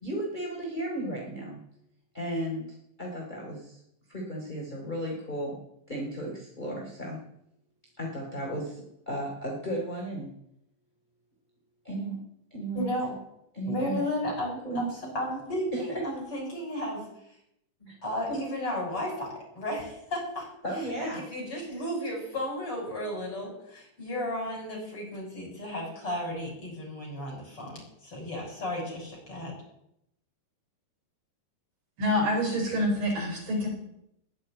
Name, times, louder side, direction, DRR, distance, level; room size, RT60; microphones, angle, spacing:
voice 1, 0.0-1.6 2.1-3.8 4.1-5.6 5.9-7.2 8.0-10.3 11.8-12.2 12.5-12.9 13.5-14.0 14.6-15.1 15.7-16.0 17.8-17.9 18.3-18.4 20.6-21.2, right 1 dB, 10° left, -2 dB, 3.4 m, -34 dB
voice 2, 12.7-13.1 13.7-17.0 18.0-20.5 21.0-29.5, left 1 dB, 35° left, -2 dB, 8.1 m, -34 dB
voice 3, 32.0-33.7, left 1 dB, 60° right, -1 dB, 6.4 m, -26 dB
20.5 x 7.6 x 8.9 m, 0.79 s
omnidirectional pair, 4.4 m